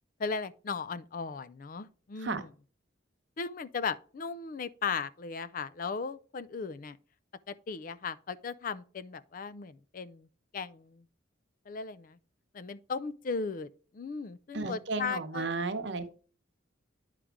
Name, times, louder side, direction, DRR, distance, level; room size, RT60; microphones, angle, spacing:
voice 1, 0.2-2.4 3.4-7.0 7.5-10.3 10.5-11.0 11.7-12.2 12.5-15.5, left 5 dB, 45° left, 0.4 m, -37 dB
voice 2, 14.5-16.1, right 3 dB, 60° right, 0.9 m, -34 dB
10.0 x 5.0 x 3.5 m
head